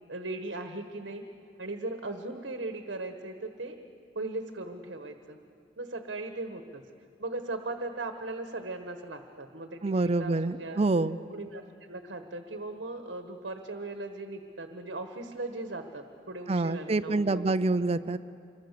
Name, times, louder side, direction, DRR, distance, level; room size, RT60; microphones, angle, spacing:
voice 1, 0.1-1.2 1.6-3.8 4.1-5.4 5.8-6.8 7.2-10.8 11.3-11.6 11.9-17.7, right 2 dB, 70° right, 5 dB, 1.3 m, -38 dB
voice 2, 9.8-11.2 16.5-18.2, right 2 dB, 35° right, 14 dB, 0.5 m, -27 dB
26.0 x 23.0 x 6.8 m, 2.4 s
head